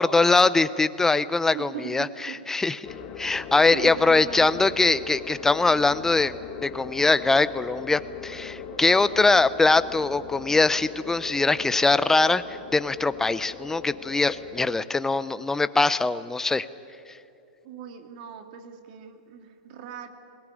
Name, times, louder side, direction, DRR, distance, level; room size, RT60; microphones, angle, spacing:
voice 1, 0.0-2.8 3.2-16.7, left 3 dB, 10° left, 15 dB, 0.6 m, -22 dB
voice 2, 1.5-2.4 3.7-4.7 17.6-20.1, right 7 dB, 55° right, 6 dB, 2.3 m, -39 dB
sound 1, 2.8-14.7, left 6 dB, 35° left, 2.2 m, -39 dB
20.5 x 18.5 x 9.9 m, 2.6 s
hypercardioid pair, 125°, 5 cm